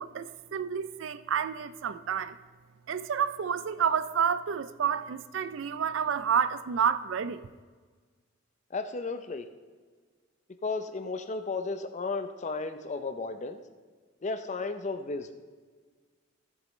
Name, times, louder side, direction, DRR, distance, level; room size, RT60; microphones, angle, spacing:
voice 1, 0.0-2.3 2.9-7.4, right 7 dB, 70° right, 0.4 m, -29 dB
voice 2, 8.7-9.5 10.6-13.6 14.2-15.3, left 3 dB, 35° left, 0.5 m, -34 dB
17.0 x 7.2 x 3.1 m
head